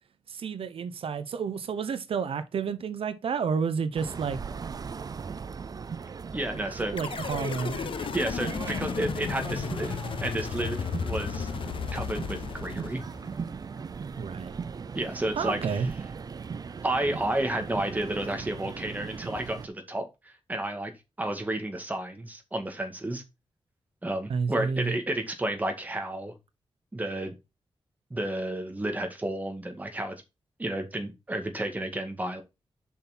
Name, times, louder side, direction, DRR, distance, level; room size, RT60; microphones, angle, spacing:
voice 1, 0.3-4.4 6.9-7.8 14.2-14.5 15.4-15.9 24.3-24.9, right 6 dB, 80° right, 0.8 m, -30 dB
sound 1, 3.9-19.7, right 5 dB, 40° right, 0.5 m, -38 dB
voice 2, 6.3-7.0 8.1-10.0 10.2-11.5 11.9-13.0 14.9-15.8 16.8-20.9 21.2-23.2 24.0-26.3 26.9-27.3 28.1-30.1 30.6-32.4, right 1 dB, 15° right, 2.0 m, -31 dB
sound 2, 7.0-13.4, left 7 dB, 65° left, 0.5 m, -34 dB
7.5 x 5.8 x 4.3 m
wide cardioid pair, 140°, 9 cm